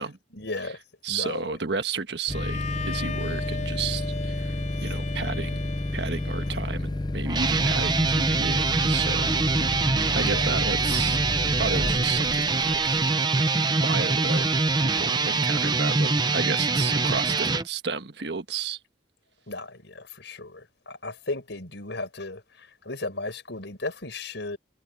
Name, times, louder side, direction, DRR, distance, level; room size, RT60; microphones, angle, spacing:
voice 1, 0.0-1.8 4.8-5.0 6.4-6.6 9.6-9.8 10.2-10.5 19.5-24.6, left 2 dB, 75° left, 4.6 m, -36 dB
voice 2, 1.0-2.6 2.8-4.6 4.8-5.6 5.9-9.3 10.1-11.2 11.6-13.0 13.8-14.4 14.8-18.8, right 5 dB, 70° right, 1.4 m, -32 dB
Bowed string instrument, 2.3-7.3, left 4 dB, 40° left, 7.6 m, -38 dB
sound 1, 2.3-13.1, left 1 dB, 20° left, 0.5 m, -30 dB
sound 2, 7.3-17.6, right 3 dB, 25° right, 0.8 m, -24 dB
head